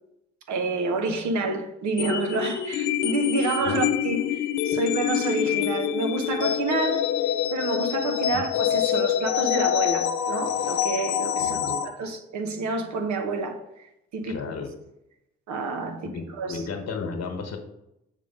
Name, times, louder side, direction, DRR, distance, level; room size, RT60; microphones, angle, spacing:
voice 1, 0.5-7.1 7.5-13.6 14.1-14.4 15.5-16.6, right 3 dB, 70° right, 1.0 m, -28 dB
sound 1, 2.0-11.9, left 10 dB, 85° left, 0.6 m, -26 dB
voice 2, 11.4-11.8 14.2-14.7 16.1-17.6, left 5 dB, 55° left, 1.3 m, -33 dB
6.5 x 3.7 x 5.3 m
hypercardioid pair, 45°, 30 cm